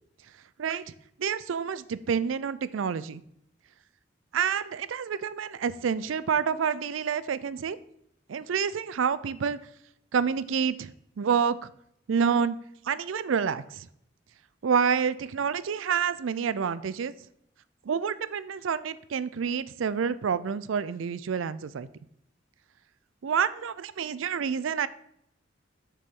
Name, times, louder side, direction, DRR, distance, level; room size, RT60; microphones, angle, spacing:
voice 1, 1.2-3.2 4.3-7.8 8.3-9.6 10.1-10.9 11.2-11.7 12.1-12.6 12.9-13.9 14.6-17.1 17.9-21.9 23.2-24.9, right 6 dB, 90° right, 17 dB, 0.4 m, -28 dB
7.5 x 6.7 x 3.7 m, 0.74 s
head